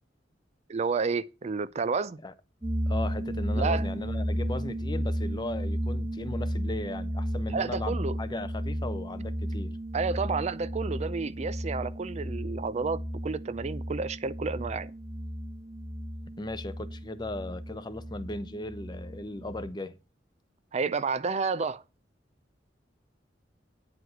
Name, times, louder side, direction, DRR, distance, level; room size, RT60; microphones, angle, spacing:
voice 1, 0.7-2.2 3.6-3.9 7.5-8.2 9.9-14.9 20.7-21.8, right 4 dB, 40° right, 0.4 m, -30 dB
sound 1, 2.6-19.7, equal, 20° right, 1.2 m, -33 dB
voice 2, 2.9-9.8 16.4-20.0, left 2 dB, 25° left, 0.8 m, -37 dB
9.5 x 4.7 x 7.8 m
head